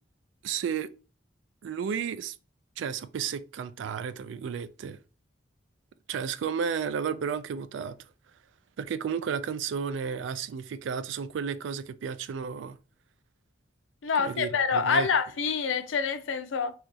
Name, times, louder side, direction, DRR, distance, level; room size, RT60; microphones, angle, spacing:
voice 1, 0.4-0.9 1.6-2.3 2.8-5.0 6.1-8.0 8.8-12.8 14.2-15.1, right 7 dB, 80° right, 0.3 m, -32 dB
voice 2, 14.0-16.7, left 5 dB, 85° left, 0.5 m, -26 dB
2.8 x 2.3 x 4.0 m
head